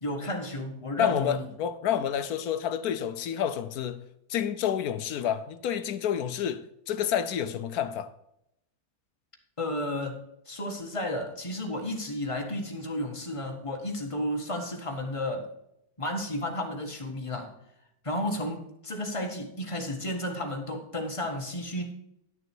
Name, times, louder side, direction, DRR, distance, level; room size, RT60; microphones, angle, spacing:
voice 1, 0.0-1.4 9.6-15.5 16.0-17.6 18.0-21.9, left 1 dB, 20° left, 1.5 m, -32 dB
voice 2, 1.0-4.0 4.3-8.1, left 9 dB, 70° left, 1.1 m, -29 dB
11.0 x 6.6 x 4.5 m
omnidirectional pair, 1.8 m